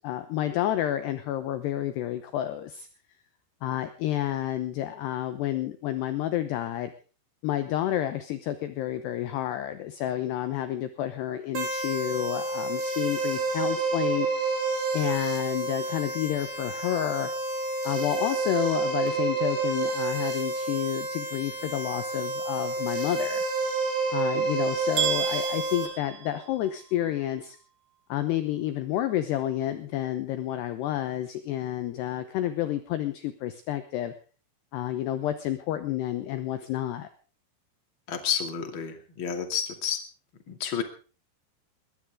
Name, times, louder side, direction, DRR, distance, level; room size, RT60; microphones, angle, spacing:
voice 1, 0.0-2.9 3.6-6.9 7.4-14.3 14.9-17.3 17.8-23.4 24.1-27.6 28.1-34.1 34.7-37.1, left 12 dB, 75° left, 10 dB, 2.7 m, -30 dB
sound 1, 11.6-25.9, right 3 dB, 60° right, 7.4 m, -29 dB
sound 2, 25.0-27.0, right 10 dB, 85° right, 5.3 m, -31 dB
voice 2, 38.1-40.0 40.5-40.8, left 8 dB, 35° left, 6 dB, 2.4 m, -30 dB
21.0 x 18.5 x 3.7 m, 0.38 s
omnidirectional pair, 5.6 m